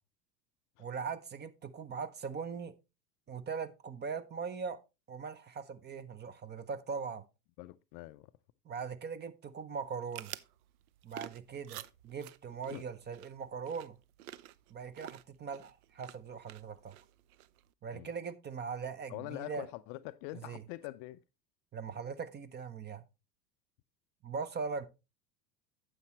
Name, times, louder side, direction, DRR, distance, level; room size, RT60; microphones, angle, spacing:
voice 1, 0.8-2.7 3.3-4.8 5.1-7.2 8.7-10.4 11.0-14.0 14.7-17.0 17.8-19.7 20.4-20.6 21.7-23.0 24.2-24.9, right 5 dB, 20° right, 0.7 m, -40 dB
voice 2, 7.6-8.3 12.7-12.8 17.9-18.1 19.1-21.2, left 18 dB, 45° left, 0.5 m, -44 dB
sound 1, 9.8-17.7, right 14 dB, 60° right, 0.7 m, -51 dB
9.5 x 7.6 x 3.0 m
hypercardioid pair, 85°, 50 cm